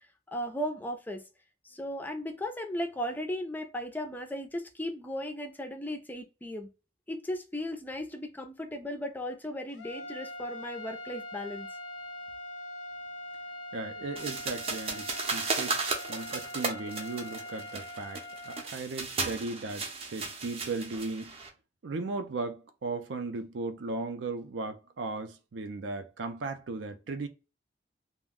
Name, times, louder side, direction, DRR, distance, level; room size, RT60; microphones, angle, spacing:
voice 1, 0.3-1.2 1.6-6.7 7.1-11.7, equal, 10° left, 0.4 m, -36 dB
sound 1, 9.7-18.6, left 1 dB, 85° left, 0.6 m, -42 dB
voice 2, 13.7-15.1 15.3-15.8 16.1-18.2 18.5-21.3 21.8-27.3, right 3 dB, 80° right, 0.5 m, -36 dB
sound 2, 14.2-21.5, right 3 dB, 35° right, 0.6 m, -35 dB
2.3 x 2.1 x 3.4 m
head